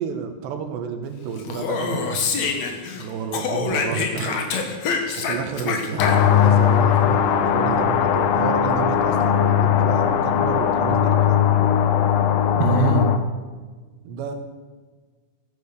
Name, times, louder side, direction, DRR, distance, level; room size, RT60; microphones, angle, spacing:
voice 1, 0.0-2.3 3.0-4.4 5.2-11.4 14.1-14.3, right 6 dB, 80° right, 6 dB, 3.5 m, -30 dB
Speech, 1.4-3.0 3.3-6.5, left 5 dB, 55° left, 2.1 m, -26 dB
voice 2, 3.9-4.4 5.9-6.4 12.6-13.1, right 5 dB, 65° right, 7 dB, 2.2 m, -25 dB
sound 1, 6.0-13.2, left 9 dB, 70° left, 2.3 m, -19 dB
16.5 x 9.9 x 6.9 m, 1.4 s
omnidirectional pair, 4.8 m